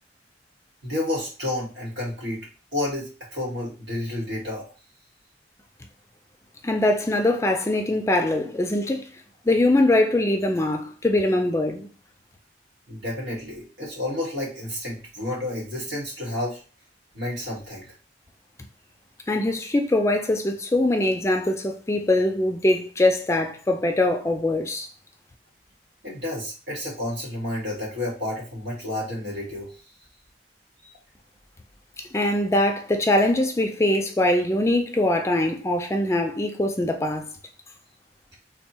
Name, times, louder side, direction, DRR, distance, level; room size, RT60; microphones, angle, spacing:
voice 1, 0.8-2.5 2.7-4.6 12.9-16.6 17.1-17.9 26.0-29.7 30.8-30.9, left 1 dB, 75° right, 1.9 m, -30 dB
voice 2, 6.6-9.1 9.5-11.9 19.3-24.9 32.0-37.3, left 1 dB, 15° left, 0.4 m, -22 dB
3.4 x 2.2 x 4.2 m
head